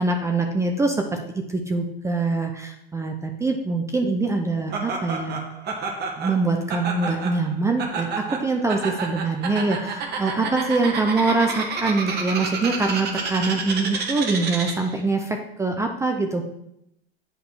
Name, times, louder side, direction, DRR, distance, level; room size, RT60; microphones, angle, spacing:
voice 1, 0.0-5.4 6.2-16.4, right 3 dB, 10° right, 3 dB, 0.5 m, -24 dB
Laughter, 4.7-15.0, right 4 dB, 30° right, 1.5 m, -30 dB
7.9 x 5.2 x 4.6 m, 0.81 s
supercardioid pair, 130°, 32 cm